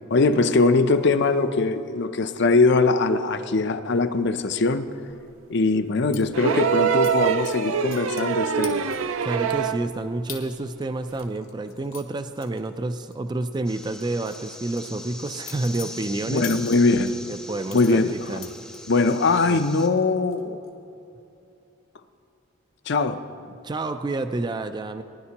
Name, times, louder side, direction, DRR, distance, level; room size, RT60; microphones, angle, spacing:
voice 1, 0.1-4.9 5.5-8.9 16.3-17.2 17.7-18.1 18.9-20.6 22.9-23.2, left 3 dB, 55° left, 10 dB, 0.5 m, -21 dB
sound 1, 6.1-6.2 7.0-7.1 7.5-8.3 8.6-9.2 9.6-9.7 10.3-10.4 10.8-13.1 13.4-13.6 14.0-17.1 17.7-19.2 19.6-20.0 20.3-20.7, left 9 dB, 80° left, 1.5 m, -42 dB
sound 2, 6.3-9.9 11.2-11.3, right 7 dB, 75° right, 0.5 m, -24 dB
voice 2, 9.2-16.4 17.3-18.5 19.5-19.6 23.6-25.0, right 2 dB, 20° right, 9 dB, 0.3 m, -29 dB
sound 3, 13.7-19.9, left 1 dB, 5° left, 0.7 m, -41 dB
20.0 x 11.0 x 2.9 m, 2.7 s
head